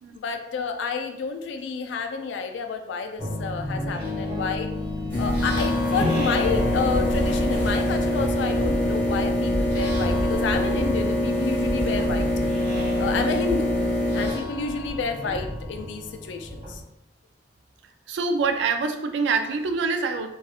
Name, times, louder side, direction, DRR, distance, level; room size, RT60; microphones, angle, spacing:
voice 1, 0.1-4.7 5.2-12.3 13.0-13.7 14.1-16.8, left 5 dB, 85° left, 6 dB, 0.3 m, -30 dB
sound 1, 3.2-16.8, left 1 dB, 20° right, 1.0 m, -30 dB
sound 2, 5.1-14.3, left 1 dB, 15° left, 0.9 m, -25 dB
voice 2, 18.1-20.3, right 4 dB, 75° right, 7 dB, 0.3 m, -25 dB
2.7 x 2.3 x 2.3 m, 0.83 s
head